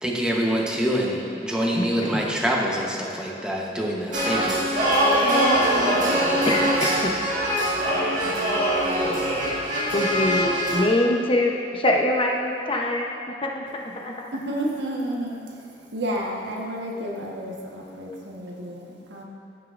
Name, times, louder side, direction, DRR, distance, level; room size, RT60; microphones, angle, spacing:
voice 1, 0.0-4.8, equal, 5° right, -3 dB, 0.9 m, -25 dB
sound 1, 4.1-10.8, equal, 45° right, 1.7 m, -22 dB
voice 2, 5.2-6.1 14.3-15.4 15.9-19.2, right 1 dB, 85° right, -1 dB, 1.3 m, -30 dB
voice 3, 6.4-7.1 9.9-14.3, left 1 dB, 30° left, 1 dB, 0.7 m, -24 dB
15.0 x 6.4 x 2.5 m, 2.5 s
head